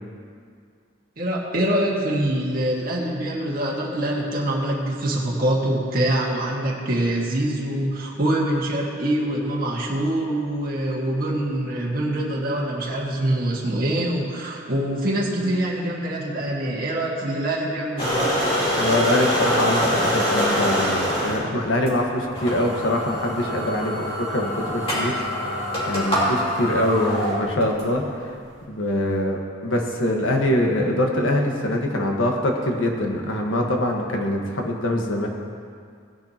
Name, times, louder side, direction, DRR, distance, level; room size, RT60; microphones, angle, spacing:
voice 1, 1.2-18.3, right 1 dB, 45° right, -3 dB, 1.8 m, -24 dB
sound 1, 18.0-21.4 21.9-22.0 22.3-27.8, equal, 25° left, 2.7 m, -24 dB
voice 2, 18.8-25.1 25.4-25.5 25.9-28.3 28.7-35.3, left 1 dB, 75° left, 1 dB, 1.4 m, -24 dB
17.5 x 10.5 x 2.9 m, 2.2 s
head